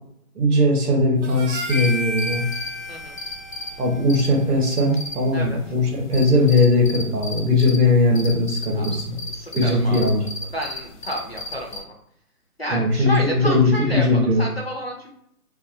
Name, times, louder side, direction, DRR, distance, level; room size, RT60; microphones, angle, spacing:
voice 1, 0.3-2.4 3.8-9.2 9.5-10.2 12.7-14.4, left 2 dB, 80° right, 1 dB, 1.2 m, -19 dB
Harmonica, 1.2-5.7, equal, 50° right, 0.6 m, -33 dB
sound 1, 1.7-11.8, left 2 dB, 85° left, 0.7 m, -36 dB
voice 2, 9.2-10.2 10.5-11.9 12.6-15.1, equal, 45° left, -1 dB, 0.4 m, -30 dB
2.7 x 2.4 x 2.5 m, 0.72 s
hypercardioid pair, 175°, 46 cm